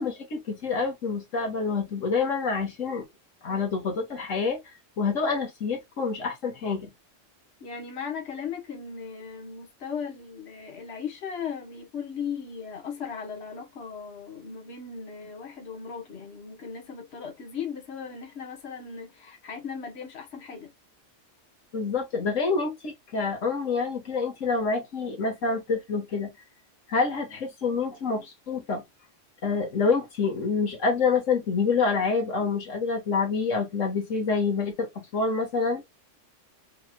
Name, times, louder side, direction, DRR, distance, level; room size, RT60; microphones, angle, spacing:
voice 1, 0.0-3.0 3.4-4.6 5.0-6.9 21.7-26.3 26.9-28.8 29.4-35.8, left 4 dB, 85° left, 1.8 m, -27 dB
voice 2, 7.6-20.7, left 6 dB, 60° left, 1.5 m, -37 dB
4.8 x 3.2 x 2.2 m
omnidirectional pair, 1.3 m